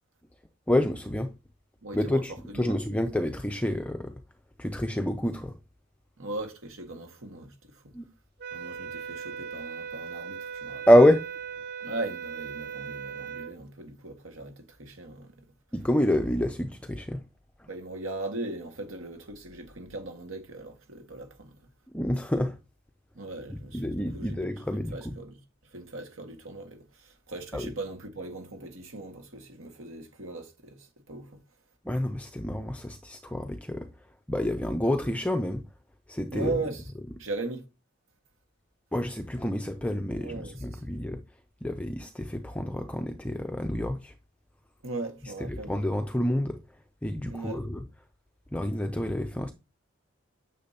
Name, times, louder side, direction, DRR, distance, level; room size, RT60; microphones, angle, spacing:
voice 1, 0.7-1.3 1.9-4.1 4.6-5.6 7.9-8.1 10.9-11.3 15.7-17.2 17.6-17.7 21.9-22.6 23.5-25.1 27.5-27.7 31.8-33.9 34.3-35.7 36.1-36.5 38.9-41.2 41.6-44.1 45.4-46.6 47.0-47.8 48.5-49.5, left 1 dB, 5° left, 0.4 m, -27 dB
voice 2, 1.8-2.8 6.2-7.8 8.5-10.9 11.8-15.4 17.7-21.5 23.2-23.8 24.1-25.4 25.7-31.4 36.3-36.9 37.2-37.6 40.2-40.9 44.8-45.7 47.3-47.7, right 2 dB, 75° right, 1.8 m, -38 dB
sound 1, 8.4-13.6, right 7 dB, 50° right, 0.5 m, -38 dB
9.7 x 6.7 x 2.8 m
head